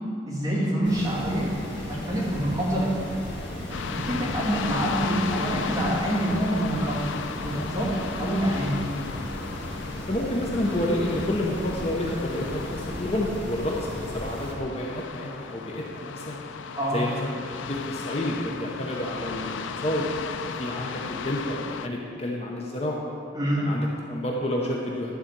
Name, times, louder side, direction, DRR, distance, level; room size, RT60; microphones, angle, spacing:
voice 1, 0.3-1.5 1.9-3.0 3.9-6.9 7.4-7.9 8.2-8.9 16.8-17.0 23.3-23.6, right 1 dB, 20° right, -8 dB, 2.3 m, -26 dB
sound 1, 0.8-14.5, left 1 dB, 65° left, 2.0 m, -36 dB
sound 2, 3.7-21.9, left 6 dB, 85° left, 0.4 m, -36 dB
voice 2, 10.1-16.4 16.9-20.0 20.6-23.0 23.6-25.1, left 1 dB, 35° left, -2 dB, 0.8 m, -29 dB
11.5 x 4.2 x 7.3 m, 2.4 s
head